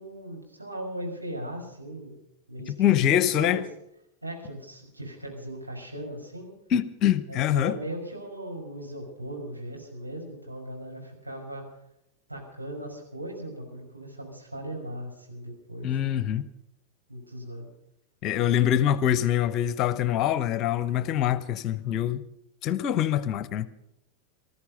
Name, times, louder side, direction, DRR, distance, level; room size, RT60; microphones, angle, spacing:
voice 1, 0.0-2.2 2.5-3.6 4.2-6.5 7.3-11.6 12.3-16.4 17.1-17.7, right 1 dB, 85° right, 5.9 m, -38 dB
voice 2, 2.8-3.6 6.7-7.8 15.8-16.4 18.2-22.3 22.6-23.7, left 11 dB, 35° left, 0.9 m, -24 dB
19.5 x 14.0 x 5.4 m
figure-of-eight pair, 90°, 0 cm